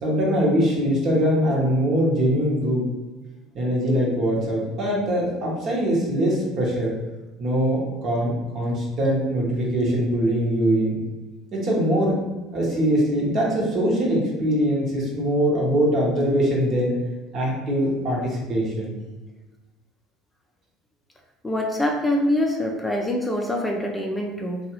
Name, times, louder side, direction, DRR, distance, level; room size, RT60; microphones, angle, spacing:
voice 1, 0.0-2.8 3.5-6.9 7.4-11.0 11.5-12.2 12.5-16.9 17.3-19.0, equal, 50° right, -3 dB, 1.0 m, -22 dB
voice 2, 21.4-24.6, left 1 dB, 10° left, 0 dB, 0.4 m, -24 dB
2.8 x 2.3 x 3.0 m, 1.2 s
hypercardioid pair, 65°, 0 cm